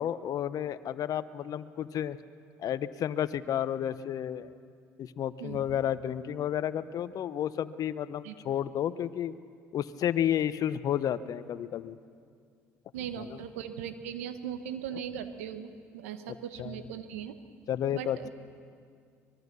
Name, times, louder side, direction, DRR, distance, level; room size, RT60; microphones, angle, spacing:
voice 1, 0.0-2.2 2.6-4.5 5.0-9.3 9.7-12.0 13.2-13.4 16.3-16.8 17.7-18.3, left 10 dB, 55° left, 15 dB, 0.9 m, -31 dB
voice 2, 12.9-17.4 17.9-18.3, right 9 dB, 85° right, 10 dB, 1.2 m, -39 dB
24.0 x 21.5 x 6.8 m, 2.2 s
hypercardioid pair, 65°, 7 cm